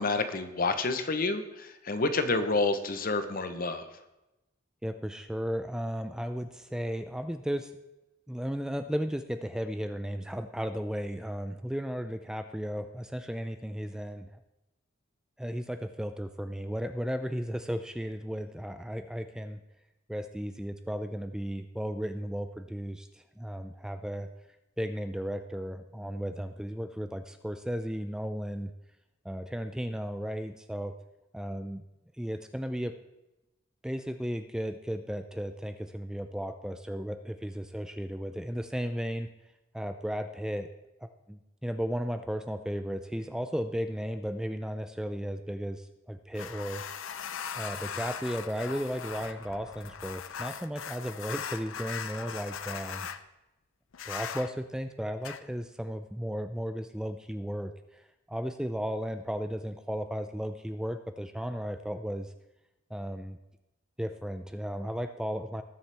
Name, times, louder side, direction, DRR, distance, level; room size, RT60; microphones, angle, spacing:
voice 1, 0.0-4.0, left 3 dB, 45° left, 9 dB, 0.9 m, -29 dB
voice 2, 4.8-7.7 8.3-14.3 15.4-19.6 20.1-24.3 24.8-28.7 29.2-30.9 31.3-31.8 32.2-32.9 33.8-39.3 39.7-40.7 41.3-46.8 47.6-53.1 54.1-57.7 58.3-62.3 62.9-63.4 64.0-65.6, equal, 5° right, 8 dB, 0.4 m, -35 dB
sound 1, 46.3-53.2 53.9-54.5 55.2-55.4, left 7 dB, 80° left, 0.6 m, -39 dB
18.5 x 7.2 x 3.4 m, 0.96 s
head